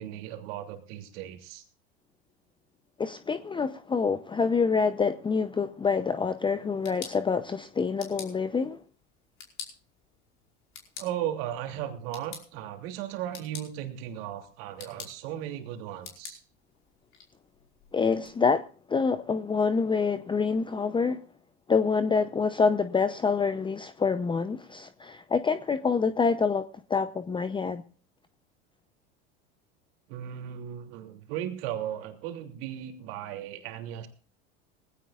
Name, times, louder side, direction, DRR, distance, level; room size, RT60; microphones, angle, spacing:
voice 1, 0.0-1.6 11.0-16.4 30.1-34.1, right 11 dB, 70° right, 3.0 m, -36 dB
voice 2, 3.0-8.8 17.9-21.2 21.7-27.8, left 5 dB, 15° left, 0.7 m, -26 dB
sound 1, 6.5-18.3, left 6 dB, 45° left, 5.0 m, -48 dB
20.5 x 16.5 x 2.5 m
hypercardioid pair, 95°, 31 cm